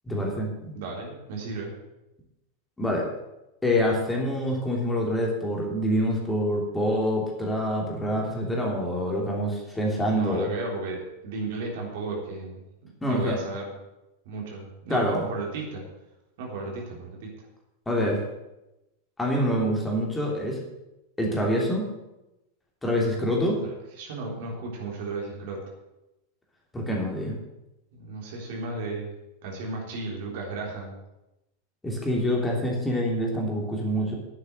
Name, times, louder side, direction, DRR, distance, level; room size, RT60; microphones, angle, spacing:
voice 1, 0.1-0.7 2.8-3.1 3.6-10.5 13.0-13.4 14.9-15.3 17.9-18.2 19.2-20.6 21.2-21.9 22.8-23.6 26.7-27.4 31.8-34.1, equal, 10° left, -1 dB, 3.1 m, -26 dB
voice 2, 0.7-1.7 10.1-12.6 13.1-13.7 14.3-15.8 16.4-17.5 23.6-25.6 27.9-29.1 29.4-30.9, right 3 dB, 50° right, -1 dB, 3.7 m, -34 dB
10.5 x 8.4 x 7.9 m, 0.95 s
figure-of-eight pair, 90°, 0 cm